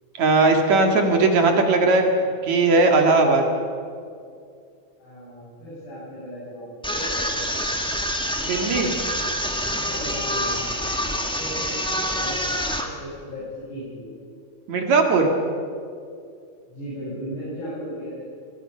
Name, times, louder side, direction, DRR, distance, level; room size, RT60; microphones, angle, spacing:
voice 1, 0.2-2.1 2.4-3.5 8.4-8.9 14.7-15.3, right 3 dB, 65° right, 3 dB, 3.3 m, -18 dB
voice 2, 5.0-7.9 9.7-14.1 16.7-18.2, equal, 75° left, -10 dB, 9.4 m, -37 dB
sound 1, 6.8-12.9, equal, 5° left, 0.3 m, -26 dB
24.0 x 22.5 x 5.7 m, 2.3 s
omnidirectional pair, 3.6 m